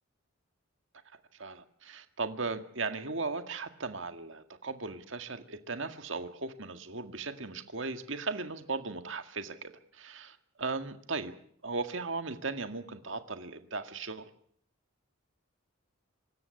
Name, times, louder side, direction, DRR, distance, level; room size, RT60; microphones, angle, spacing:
voice 1, 1.3-11.3 11.6-14.3, right 3 dB, 60° right, 8 dB, 1.9 m, -37 dB
26.0 x 13.5 x 9.7 m, 0.63 s
head